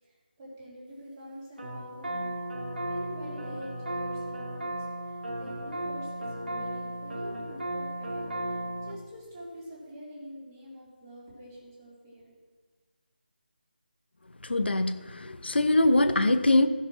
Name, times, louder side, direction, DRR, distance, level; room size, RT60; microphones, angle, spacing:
voice 1, 0.0-2.4 2.8-12.3, equal, 15° right, -7 dB, 3.2 m, -46 dB
sound 1, 1.6-8.9, right 1 dB, 70° right, 3.0 m, -35 dB
voice 2, 14.4-16.7, left 2 dB, 80° left, 9 dB, 0.8 m, -23 dB
15.5 x 5.9 x 6.0 m, 1.5 s
figure-of-eight pair, 170°, 6 cm